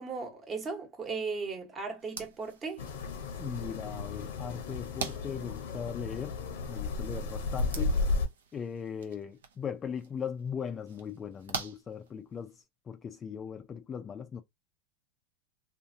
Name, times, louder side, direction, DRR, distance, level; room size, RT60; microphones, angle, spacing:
voice 1, 0.0-2.9, right 4 dB, 25° right, 1.0 m, -37 dB
sound 1, 2.0-12.6, right 6 dB, 80° right, 0.6 m, -46 dB
sound 2, 2.8-8.3, left 3 dB, 70° left, 0.7 m, -33 dB
voice 2, 3.4-6.4 6.7-8.0 8.5-12.6 12.9-14.4, left 7 dB, 25° left, 0.4 m, -39 dB
2.6 x 2.5 x 2.6 m
hypercardioid pair, 95°, 0 cm